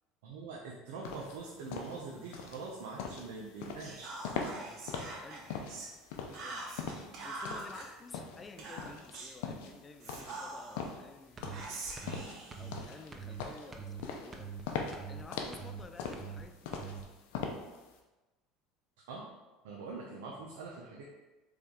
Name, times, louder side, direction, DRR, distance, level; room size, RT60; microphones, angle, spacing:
voice 1, 0.2-4.2 19.0-19.3 19.6-21.0, right 4 dB, 80° right, -3 dB, 0.7 m, -44 dB
sound 1, 1.0-17.9, left 5 dB, 75° left, 0.6 m, -41 dB
Whispering, 3.8-5.9 6.3-7.9 8.6-9.4 10.0-10.9 11.5-13.4, right 2 dB, 55° right, 1.0 m, -44 dB
voice 2, 4.4-5.6 6.1-6.7 7.2-12.1 12.6-14.6 15.1-16.7, left 4 dB, 25° left, 7 dB, 0.4 m, -53 dB
sound 2, 11.4-11.6 12.0-12.2 12.5-12.8 13.1-13.4 13.7-14.0 14.3-14.6 14.9-15.2 15.5-15.8 16.1-16.4 16.7-17.0, right 6 dB, 25° right, 0.6 m, -44 dB
4.0 x 3.3 x 3.7 m, 1.1 s
supercardioid pair, 100°, 0 cm